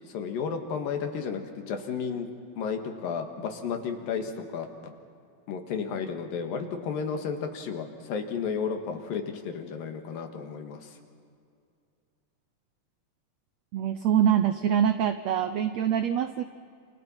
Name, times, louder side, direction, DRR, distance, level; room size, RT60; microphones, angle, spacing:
voice 1, 0.1-2.3 2.6-4.7 5.5-11.0, left 6 dB, 85° left, 5 dB, 3.4 m, -33 dB
voice 2, 13.7-16.4, right 9 dB, 85° right, 10 dB, 1.5 m, -24 dB
29.0 x 28.5 x 4.4 m, 2.3 s
omnidirectional pair, 3.9 m